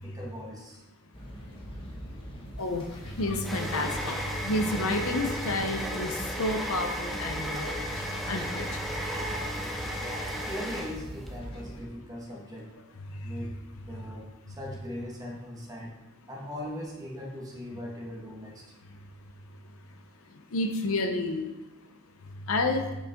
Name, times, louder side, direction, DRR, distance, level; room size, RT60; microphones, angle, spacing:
voice 1, 0.0-0.8 10.3-12.7 13.2-13.5 13.8-16.0 16.3-18.6, left 1 dB, 15° right, -2 dB, 1.6 m, -40 dB
sound 1, 1.1-11.8, equal, 25° left, 1.5 m, -42 dB
sound 2, 2.6-11.3, equal, ahead, 0.9 m, -35 dB
voice 2, 3.2-4.2 4.4-7.8 8.3-8.7 20.5-21.5 22.5-22.8, left 2 dB, 70° left, 5 dB, 0.8 m, -29 dB
8.8 x 5.5 x 3.7 m, 1.0 s
head